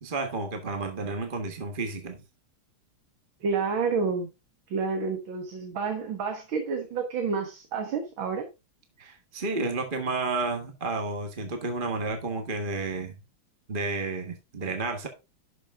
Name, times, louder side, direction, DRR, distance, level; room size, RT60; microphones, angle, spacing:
voice 1, 0.0-2.2 9.0-13.2 13.7-15.1, right 3 dB, 25° right, 1.4 m, -31 dB
voice 2, 3.4-4.3 4.7-8.5, right 5 dB, 70° right, 2.3 m, -29 dB
12.0 x 6.1 x 3.6 m
omnidirectional pair, 2.3 m